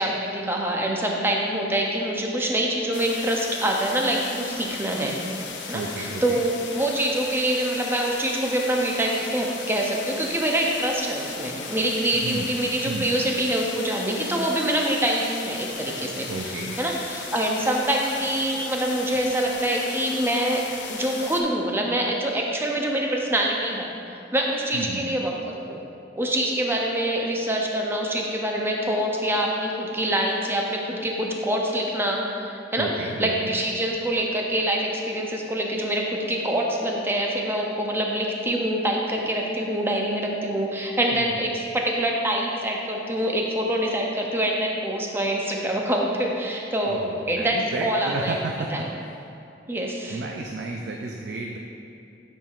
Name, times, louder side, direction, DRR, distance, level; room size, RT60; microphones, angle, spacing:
voice 1, 0.0-5.1 5.7-20.6 20.9-23.9 24.3-25.8 26.2-32.9 33.2-47.0 47.3-48.4 48.7-48.9 49.7-50.2, right 1 dB, 15° right, 0 dB, 0.5 m, -25 dB
sound 1, 2.9-21.4, left 5 dB, 75° left, 0.5 m, -37 dB
voice 2, 5.7-6.4 12.1-12.5 12.9-13.1 16.3-16.8 24.7-25.2 32.8-33.6 41.1-41.3 46.8-48.7 49.0-49.1 50.1-51.6, right 3 dB, 65° right, 1 dB, 0.4 m, -32 dB
8.7 x 4.5 x 2.4 m, 2.6 s
head